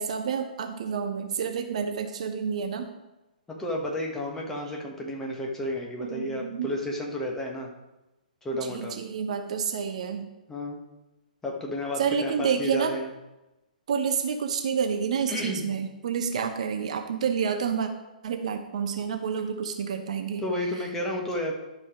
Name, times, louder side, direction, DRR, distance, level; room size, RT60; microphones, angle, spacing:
voice 1, 0.0-2.9 6.0-6.7 8.6-10.3 12.0-12.9 13.9-17.9 18.2-20.4, right 6 dB, 50° right, 6 dB, 0.9 m, -29 dB
voice 2, 3.5-7.7 8.4-8.9 10.5-10.8 11.4-13.1 15.3-15.7 20.4-21.5, left 1 dB, 10° left, -1 dB, 1.4 m, -32 dB
11.5 x 4.9 x 4.9 m, 1.0 s
figure-of-eight pair, 120°, 5 cm